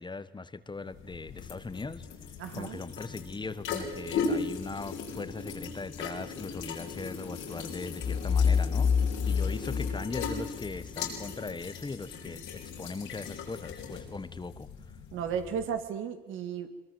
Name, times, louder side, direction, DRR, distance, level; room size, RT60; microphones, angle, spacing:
voice 1, 0.0-14.7, left 3 dB, 25° left, 14 dB, 1.3 m, -40 dB
sound 1, 0.8-15.8, left 5 dB, 90° left, 4.6 m, -38 dB
voice 2, 2.4-2.8 15.1-16.7, right 7 dB, 85° right, 9 dB, 2.2 m, -34 dB
sound 2, 8.0-10.8, left 6 dB, 40° left, 1.4 m, -27 dB
22.5 x 21.5 x 7.9 m, 1.1 s
cardioid pair, 90°, 20 cm